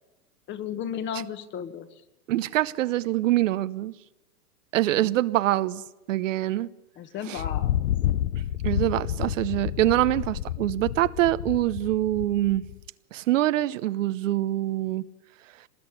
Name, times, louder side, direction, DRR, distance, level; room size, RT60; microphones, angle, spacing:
voice 1, 0.5-1.9 4.9-5.1 7.0-7.9, left 8 dB, 25° left, 1.4 m, -34 dB
voice 2, 2.3-3.9 4.7-5.8 6.1-6.7 7.3-7.4 8.6-12.6 13.1-15.0, right 15 dB, 55° right, 0.9 m, -24 dB
Thunder, 7.4-12.8, left 12 dB, 60° left, 0.8 m, -29 dB
25.0 x 20.0 x 9.9 m
hypercardioid pair, 140°, 47 cm